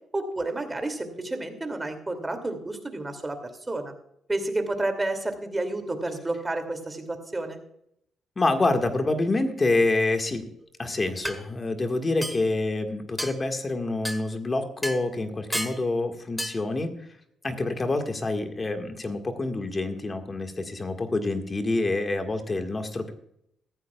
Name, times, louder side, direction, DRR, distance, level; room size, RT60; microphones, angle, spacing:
voice 1, 0.1-3.9 4.3-7.6, right 2 dB, 20° right, 6 dB, 2.6 m, -30 dB
voice 2, 8.4-10.5 10.8-16.9 17.4-23.1, left 2 dB, 30° left, 5 dB, 1.7 m, -27 dB
sound 1, 10.6-10.7 11.2-11.4 12.2-12.5 13.2-13.4 14.0-14.2 14.8-15.0 15.5-15.8 16.4-16.6, equal, ahead, 1.5 m, -31 dB
14.5 x 14.5 x 2.4 m, 0.72 s
cardioid pair, 90°, 0 cm